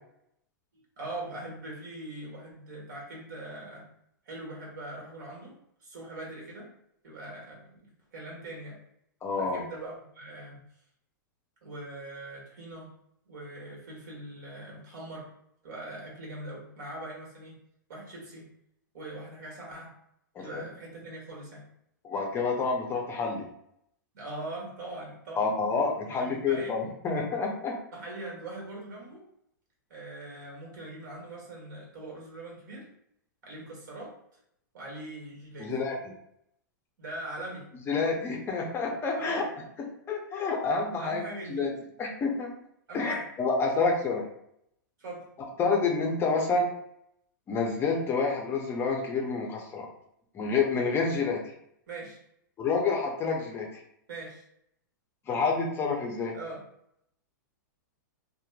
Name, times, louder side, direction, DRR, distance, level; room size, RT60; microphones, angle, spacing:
voice 1, 0.7-3.9 4.2-6.7 7.0-8.8 9.4-10.6 11.6-12.9 13.2-15.3 15.6-17.6 17.9-18.5 18.9-19.9 20.4-21.7 24.1-25.6 26.1-26.8 27.9-29.2 29.9-32.9 33.4-34.1 34.7-35.8 37.0-37.7 39.2-39.5 41.0-41.7 42.9-43.3 45.0-45.2 51.9-52.2 54.1-54.4 56.3-56.6, right 2 dB, 65° right, -2 dB, 1.3 m, -41 dB
voice 2, 9.2-9.6 20.4-20.6 22.0-23.5 25.4-27.8 35.6-36.0 37.9-39.4 40.1-41.2 41.5-41.7 42.0-42.5 42.9-44.3 45.6-46.7 47.5-49.9 50.3-51.4 52.6-53.7 55.3-56.3, left 4 dB, 20° left, 1 dB, 0.5 m, -28 dB
2.9 x 2.1 x 2.3 m, 0.73 s
hypercardioid pair, 125°, 11 cm